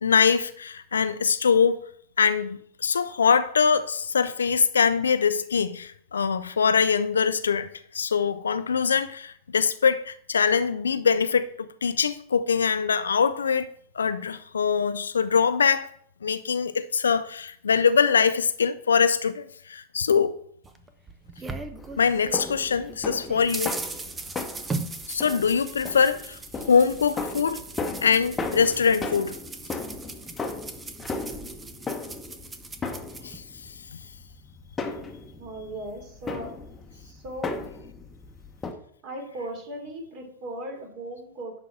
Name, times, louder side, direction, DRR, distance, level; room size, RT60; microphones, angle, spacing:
voice 1, 0.0-1.9 2.2-13.7 13.9-15.9 16.2-20.4 22.0-23.8 25.1-26.4 26.6-27.6 28.0-29.4 33.2-33.4, left 6 dB, 70° left, 0.5 m, -23 dB
sound 1, 20.6-22.5 22.9-33.4, right 3 dB, 15° right, 0.8 m, -38 dB
sound 2, 21.8-38.7, left 3 dB, 15° left, 1.1 m, -36 dB
voice 2, 35.4-36.5 36.9-37.7 39.0-41.5, right 1 dB, 40° right, 3.0 m, -37 dB
11.0 x 4.1 x 5.8 m
figure-of-eight pair, 90°, 0 cm